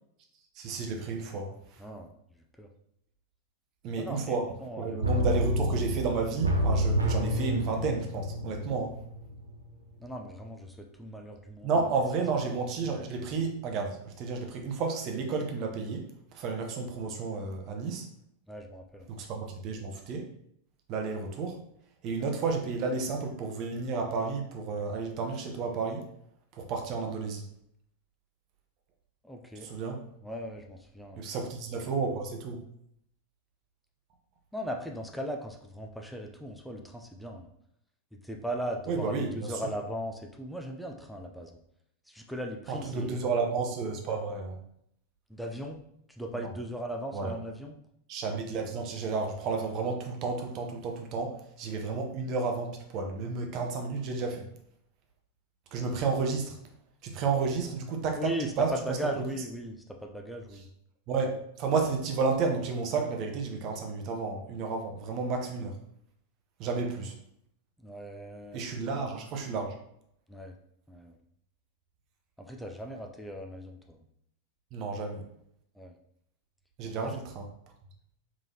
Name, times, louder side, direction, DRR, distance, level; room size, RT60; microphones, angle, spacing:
voice 1, 0.5-1.8 3.8-9.0 11.6-16.1 16.3-18.0 19.1-20.3 20.9-21.6 22.0-26.1 26.5-27.4 29.6-30.0 31.2-32.6 38.9-39.3 42.7-44.6 46.3-46.5 47.1-47.3 48.1-54.5 55.7-56.6 57.0-59.3 61.1-65.8 66.6-67.1 68.5-69.8 74.7-75.2 76.8-77.5, right 4 dB, 40° right, 3 dB, 0.7 m, -31 dB
voice 2, 1.8-2.1 2.6-2.7 4.0-5.0 5.3-5.4 10.0-11.9 18.5-19.1 29.2-29.7 30.2-31.3 34.5-37.5 38.2-41.6 42.1-43.2 45.3-45.8 46.2-47.8 58.2-60.6 67.8-68.7 70.3-70.6 70.9-71.1 72.4-74.0 75.8-75.9 77.0-77.2, equal, ahead, 2 dB, 0.4 m, -38 dB
sound 1, 5.0-9.7 10.0-10.1, equal, 75° right, 0.5 m, -29 dB
3.6 x 3.3 x 2.7 m, 0.72 s
figure-of-eight pair, 90°, 0 cm